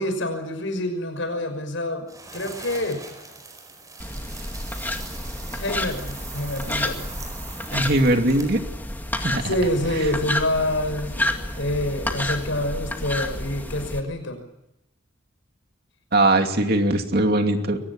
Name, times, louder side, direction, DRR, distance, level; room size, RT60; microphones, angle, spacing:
voice 1, 0.0-3.0 5.5-7.0 9.2-14.4, left 1 dB, 75° left, 7 dB, 5.9 m, -27 dB
sound 1, 2.1-8.6, right 4 dB, 20° right, 4.6 m, -41 dB
sound 2, 4.0-14.0, left 1 dB, 10° left, 2.1 m, -30 dB
voice 2, 7.7-8.6 9.2-9.5 16.1-17.8, right 1 dB, 50° right, 5 dB, 2.6 m, -20 dB
23.0 x 19.0 x 9.9 m, 0.87 s
head